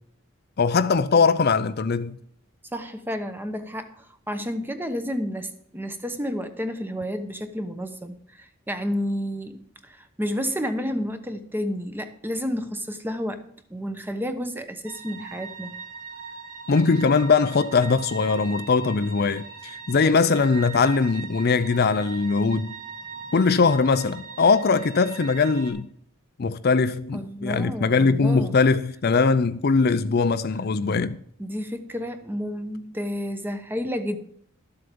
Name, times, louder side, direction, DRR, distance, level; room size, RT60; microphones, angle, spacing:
voice 1, 0.6-2.2 16.7-22.8 23.3-25.9 26.4-31.2, left 4 dB, 45° left, 0.4 m, -21 dB
voice 2, 2.7-13.4 13.7-15.7 27.1-28.6 31.4-34.2, equal, 10° right, 0.9 m, -31 dB
sound 1, 14.9-25.7, right 5 dB, 85° right, 3.1 m, -40 dB
12.5 x 7.7 x 5.2 m
head